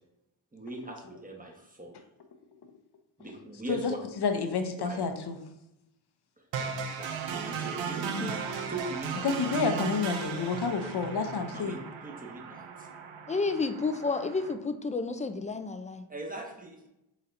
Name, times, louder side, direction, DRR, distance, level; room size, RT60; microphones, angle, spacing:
voice 1, 0.5-1.9 3.2-4.0 4.8-5.0 6.4-8.4 8.7-9.3 11.5-12.9 16.1-16.9, right 2 dB, 20° right, 1 dB, 1.1 m, -40 dB
voice 2, 4.2-5.4 9.2-11.8, left 5 dB, 55° left, 7 dB, 0.7 m, -29 dB
sound 1, 6.5-14.5, right 6 dB, 75° right, 0.7 m, -36 dB
voice 3, 13.3-16.1, left 3 dB, 15° left, 8 dB, 0.4 m, -31 dB
4.1 x 4.0 x 2.6 m, 0.88 s
supercardioid pair, 50°, 47 cm